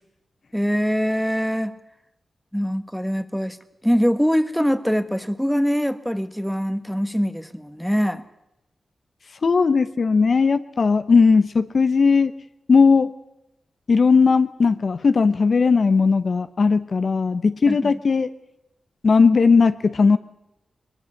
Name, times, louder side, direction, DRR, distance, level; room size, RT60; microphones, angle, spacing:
voice 1, 0.5-1.7 2.5-3.6 3.8-8.2 17.7-18.0, equal, ahead, 11 dB, 1.2 m, -23 dB
voice 2, 9.4-12.3 12.7-13.1 13.9-18.3 19.0-20.2, left 4 dB, 55° left, 11 dB, 0.8 m, -17 dB
21.5 x 21.0 x 6.5 m, 0.88 s
cardioid pair, 75°, 0 cm